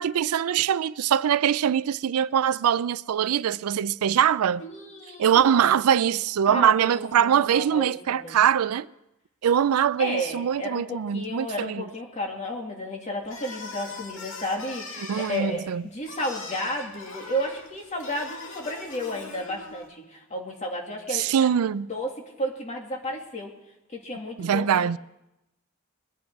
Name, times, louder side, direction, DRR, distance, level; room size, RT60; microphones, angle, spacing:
voice 1, 0.0-4.6 5.2-8.9 9.4-11.8 15.1-15.8 21.1-21.9 24.4-25.0, right 8 dB, 85° right, 0.4 m, -23 dB
voice 2, 4.6-5.5 6.5-8.4 10.0-23.5 23.9-25.0, equal, 35° left, 2.5 m, -33 dB
sound 1, 13.2-19.9, left 3 dB, 65° left, 2.2 m, -41 dB
22.0 x 10.5 x 4.7 m
head